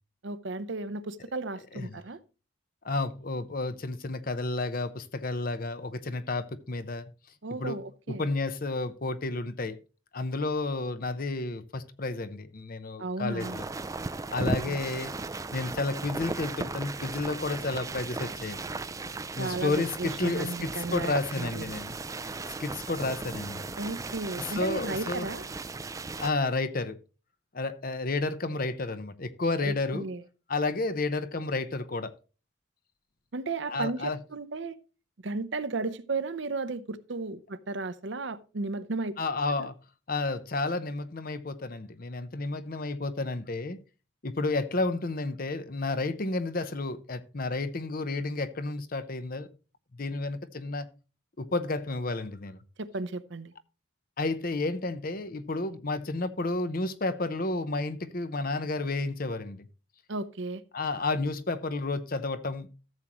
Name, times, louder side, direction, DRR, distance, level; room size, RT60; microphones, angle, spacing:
voice 1, 0.2-2.2 7.4-8.2 13.0-13.6 14.4-14.8 19.4-21.7 23.8-25.4 29.6-30.2 33.3-34.8 35.2-39.1 39.6-39.7 52.8-53.5 60.1-60.6, right 3 dB, 60° right, 0.7 m, -34 dB
voice 2, 2.8-7.1 7.6-7.8 8.2-9.8 10.1-13.6 14.3-15.1 15.5-18.6 19.4-22.0 22.6-23.6 24.4-25.3 26.2-27.0 27.5-30.1 30.5-32.1 33.7-34.2 39.2-39.7 40.1-43.8 44.2-49.5 50.0-50.9 51.4-52.6 54.2-59.7 60.7-62.7, left 3 dB, 45° left, 0.7 m, -31 dB
sound 1, 13.4-26.3, right 3 dB, 15° right, 0.3 m, -36 dB
13.5 x 7.4 x 3.0 m
head